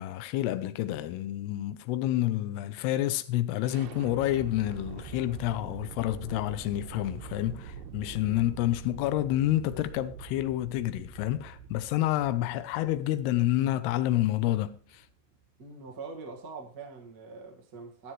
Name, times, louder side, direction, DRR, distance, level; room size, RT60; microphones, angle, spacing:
voice 1, 0.0-15.1, left 14 dB, 85° left, 2.8 m, -29 dB
sound 1, 3.6-15.5, right 6 dB, 90° right, 3.1 m, -45 dB
voice 2, 15.6-18.1, right 4 dB, 40° right, 1.3 m, -43 dB
22.5 x 7.8 x 3.2 m
omnidirectional pair, 4.6 m